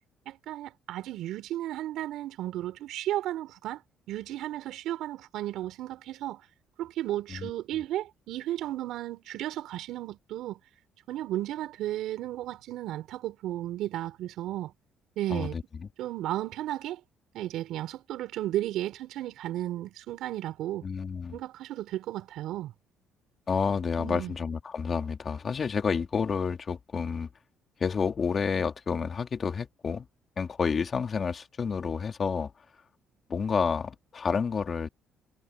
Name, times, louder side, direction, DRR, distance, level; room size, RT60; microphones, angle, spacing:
voice 1, 0.3-3.8 4.1-6.4 6.8-10.6 11.1-14.7 15.2-15.5 16.0-17.0 17.3-20.8 21.3-22.7 24.0-24.3, right 14 dB, 75° right, 5.3 m, -34 dB
voice 2, 15.3-15.9 20.8-21.4 23.5-27.3 27.8-30.1 30.4-32.5 33.3-34.9, left 6 dB, 40° left, 3.0 m, -29 dB
supercardioid pair, 80°, 0 cm